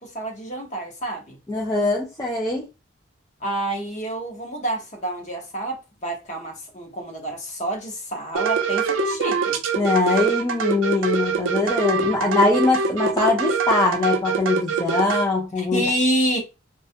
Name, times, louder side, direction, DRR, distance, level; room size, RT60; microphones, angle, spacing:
voice 1, 0.0-1.4 3.4-9.6 15.6-16.4, right 1 dB, 35° left, 0.8 m, -28 dB
voice 2, 1.5-2.6 9.8-15.8, left 3 dB, 15° left, 0.4 m, -22 dB
sound 1, 8.3-15.3, right 5 dB, 80° right, 0.5 m, -24 dB
2.3 x 2.1 x 2.6 m
head